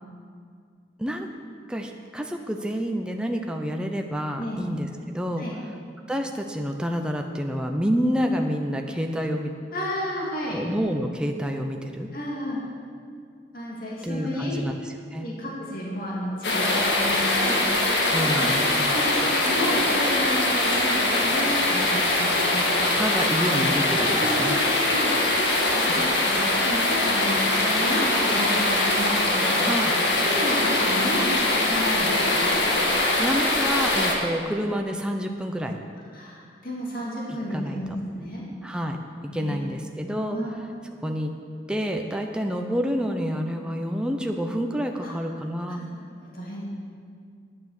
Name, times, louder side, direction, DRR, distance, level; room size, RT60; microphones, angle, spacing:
voice 1, 1.0-1.3 1.7-5.5 6.1-9.5 10.5-12.1 14.0-14.8 15.1-15.3 18.1-18.9 23.0-24.6 27.2-27.3 29.7-29.9 33.2-35.8 37.5-38.0 38.6-39.0 39.3-40.4 41.0-41.3 41.7-45.8, equal, 5° right, 3 dB, 0.6 m, -28 dB
voice 2, 9.7-10.6 12.1-12.6 13.5-14.6 15.2-17.6 18.2-22.8 23.9-25.1 25.6-29.7 30.2-32.6 36.1-38.4 39.3-39.7 40.3-40.5 45.0-45.1 46.2-46.6, equal, 50° left, -4 dB, 2.3 m, -32 dB
sound 1, 16.4-34.2, left 2 dB, 75° left, 1.7 m, -22 dB
9.9 x 9.1 x 6.5 m, 2.2 s
head